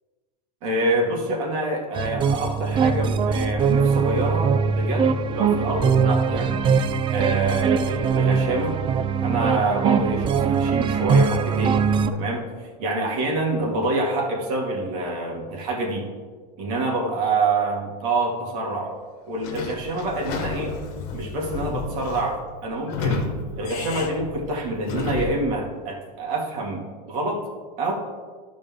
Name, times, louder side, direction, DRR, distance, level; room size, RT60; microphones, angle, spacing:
voice 1, 0.6-6.6 7.1-8.8 9.2-11.8 12.1-12.5 12.8-16.1 16.6-18.9 19.3-20.8 21.1-23.3 23.6-27.5 27.8-27.9, right 2 dB, 65° right, -1 dB, 2.5 m, -26 dB
sound 1, 1.9-12.1, right 6 dB, 25° right, 0.4 m, -21 dB
Sliding door / Squeak, 19.4-25.5, left 3 dB, 55° left, 1.4 m, -31 dB
12.0 x 5.1 x 3.8 m, 1.5 s
supercardioid pair, 125°, 20 cm